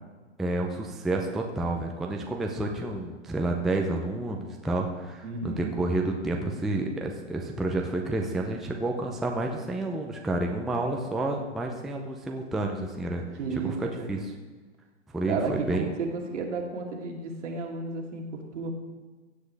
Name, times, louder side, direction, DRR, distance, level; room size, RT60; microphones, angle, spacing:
voice 1, 0.4-13.2 13.5-14.2 15.1-15.8, right 2 dB, ahead, 1 dB, 0.4 m, -30 dB
voice 2, 5.2-5.8 13.4-14.1 15.2-18.7, right 4 dB, 75° right, 0 dB, 2.5 m, -33 dB
16.0 x 8.0 x 3.3 m, 1.3 s
hypercardioid pair, 125°, 37 cm